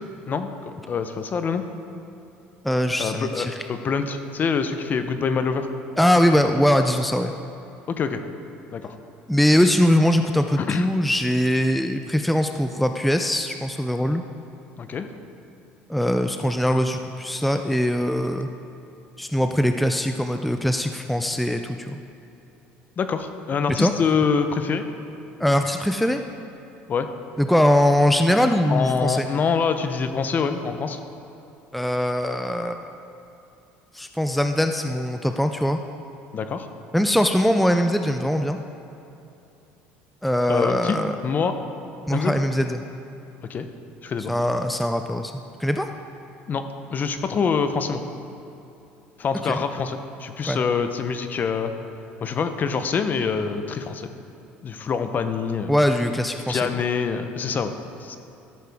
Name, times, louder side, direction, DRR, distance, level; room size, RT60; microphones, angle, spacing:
voice 1, 0.3-1.6 3.0-5.7 7.9-8.2 8.7-9.0 10.6-10.8 14.8-15.1 23.0-24.9 26.9-27.1 28.7-31.0 36.3-36.7 40.5-41.5 42.1-42.4 43.5-43.7 44.0-44.3 46.5-46.6 46.9-48.0 49.2-51.7 52.2-54.1 54.6-55.7 56.5-57.7 58.0-58.2, left 5 dB, 40° left, 9 dB, 0.7 m, -25 dB
voice 2, 2.6-3.5 6.0-7.3 9.3-14.2 15.9-18.5 19.2-22.0 23.8-23.9 25.4-26.2 27.4-29.3 31.7-32.9 33.9-35.8 36.9-38.6 40.2-41.2 42.1-42.8 44.3-45.3 45.6-45.9 49.4-49.6 50.5-50.6 55.7-56.7, equal, ahead, 6 dB, 0.4 m, -21 dB
13.5 x 6.5 x 3.5 m, 2.8 s
supercardioid pair, 90°, 5 cm